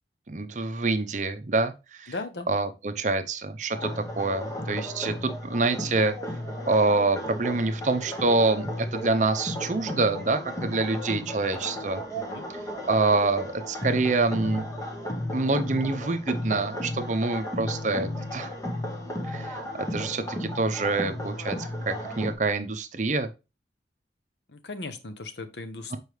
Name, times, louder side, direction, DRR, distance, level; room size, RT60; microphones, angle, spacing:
voice 1, 0.3-2.1 2.5-6.1 6.7-12.0 12.9-14.6 15.3-18.5 19.2-21.6 21.9-23.3, right 3 dB, 40° right, 9 dB, 0.6 m, -26 dB
voice 2, 2.1-2.5 11.5-11.8 12.1-12.5 24.5-26.0, left 3 dB, 70° left, 10 dB, 0.8 m, -37 dB
sound 1, 3.7-22.3, left 1 dB, 20° left, 1.2 m, -34 dB
6.7 x 4.6 x 3.2 m, 0.28 s
head